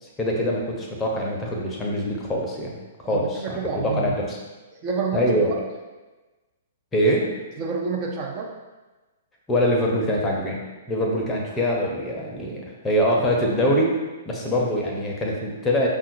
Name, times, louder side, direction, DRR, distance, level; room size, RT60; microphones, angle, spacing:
voice 1, 0.0-2.7 3.0-3.6 3.8-4.4 5.1-5.6 6.9-7.3 9.5-10.6 10.9-13.9 14.2-15.9, equal, 15° left, -2 dB, 0.7 m, -23 dB
voice 2, 3.0-4.1 4.8-5.3 7.6-8.5, right 5 dB, 35° right, -1 dB, 0.5 m, -28 dB
5.4 x 2.3 x 2.6 m, 1.2 s
figure-of-eight pair, 115°, 0 cm